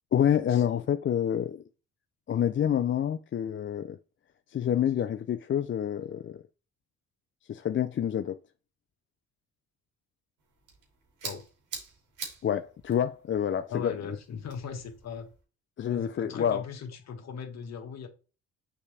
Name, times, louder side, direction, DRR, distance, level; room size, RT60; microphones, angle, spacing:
voice 1, 0.1-1.6 2.3-4.0 4.5-6.4 7.5-8.4 12.4-14.2 15.8-16.6, left 9 dB, 40° left, 0.5 m, -28 dB
sound 1, 10.4-15.4, right 5 dB, 80° right, 3.0 m, -45 dB
voice 2, 13.7-15.3 15.9-18.1, left 6 dB, 60° left, 1.6 m, -38 dB
7.0 x 5.0 x 3.4 m
cardioid pair, 90°, 30 cm